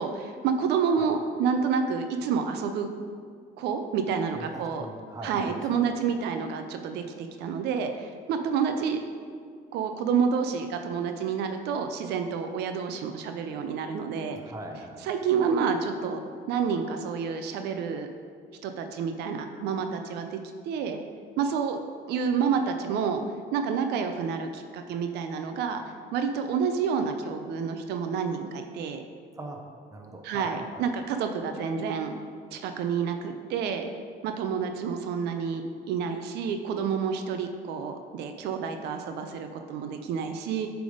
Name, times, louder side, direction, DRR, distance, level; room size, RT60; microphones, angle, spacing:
voice 1, 0.0-2.9 3.6-4.9 5.2-9.0 9.7-14.4 15.0-16.2 16.5-18.1 18.6-20.4 20.6-21.0 21.4-21.8 22.1-23.2 23.5-25.8 26.1-29.0 30.2-32.1 32.5-33.9 34.2-40.7, right 6 dB, 80° right, 6 dB, 0.5 m, -29 dB
voice 2, 4.3-6.2 14.3-15.1 29.4-29.6 29.9-30.9, right 1 dB, 20° right, 2 dB, 0.9 m, -41 dB
7.7 x 3.5 x 5.0 m, 2.1 s
cardioid pair, 110°, 17 cm